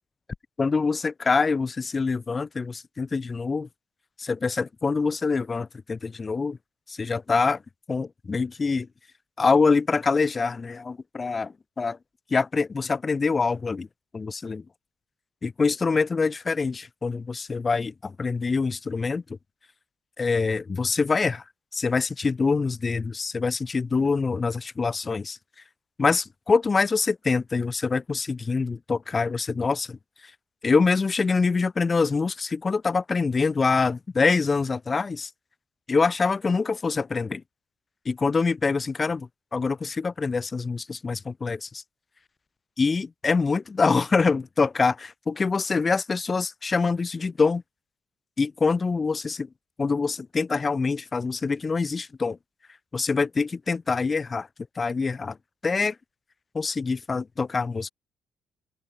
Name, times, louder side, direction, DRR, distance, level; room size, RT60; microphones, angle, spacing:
voice 1, 0.6-3.7 4.2-6.6 6.9-7.6 7.9-8.9 9.4-12.0 12.3-13.9 14.1-14.6 15.4-19.4 20.2-21.4 21.7-25.4 26.0-30.0 30.2-30.3 30.6-35.3 35.9-37.4 38.1-41.8 42.8-47.6 48.4-49.5 49.8-52.4 52.9-54.5 54.8-55.4 55.6-56.0 56.5-57.9, left 4 dB, 30° left, 5.2 m, -25 dB
open air
cardioid pair, 110°, 0 cm